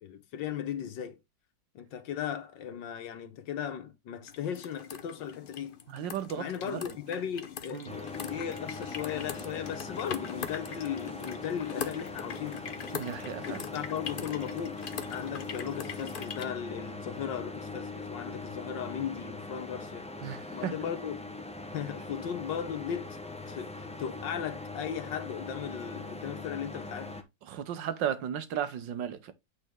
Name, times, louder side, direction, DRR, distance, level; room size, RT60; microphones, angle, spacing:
voice 1, 0.0-1.2 1.7-5.8 6.3-12.7 13.4-14.8 15.1-20.1 20.5-21.2 21.7-23.2 23.5-27.2, left 9 dB, 85° left, 1.8 m, -37 dB
sound 1, 4.3-16.5, left 7 dB, 65° left, 0.5 m, -42 dB
voice 2, 5.9-6.8 7.7-7.9 12.9-13.6 20.2-20.7 27.5-29.3, right 9 dB, 85° right, 1.6 m, -35 dB
sound 2, 7.9-27.2, left 2 dB, 10° left, 0.4 m, -41 dB
8.5 x 4.3 x 3.6 m
omnidirectional pair, 1.9 m